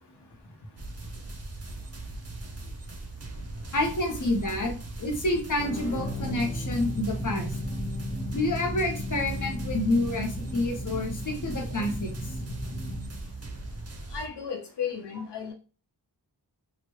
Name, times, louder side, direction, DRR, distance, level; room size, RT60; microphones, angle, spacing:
sound 1, 0.8-14.3, right 2 dB, 40° right, 0.6 m, -40 dB
voice 1, 3.7-7.5 8.3-12.3, left 2 dB, 50° left, 2 dB, 0.9 m, -28 dB
sound 2, 5.6-14.3, equal, 20° left, 0.8 m, -35 dB
voice 2, 14.1-15.5, left 7 dB, 85° left, 2 dB, 0.5 m, -34 dB
3.0 x 2.4 x 3.0 m, 0.36 s
wide cardioid pair, 70°, 40 cm